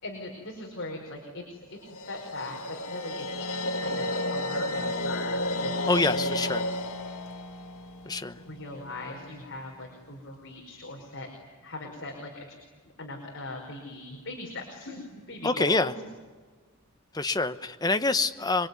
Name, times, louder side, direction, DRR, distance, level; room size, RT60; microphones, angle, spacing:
voice 1, 0.0-6.4 8.4-11.3 11.6-12.5 13.0-16.0, left 2 dB, 55° left, 0 dB, 4.9 m, -40 dB
sound 1, 1.9-9.0, left 1 dB, 70° left, 2.0 m, -32 dB
voice 2, 5.9-6.7 8.1-8.4 15.4-15.9 17.1-18.7, left 3 dB, 15° left, 9 dB, 1.0 m, -26 dB
27.0 x 23.0 x 9.6 m, 1.5 s
head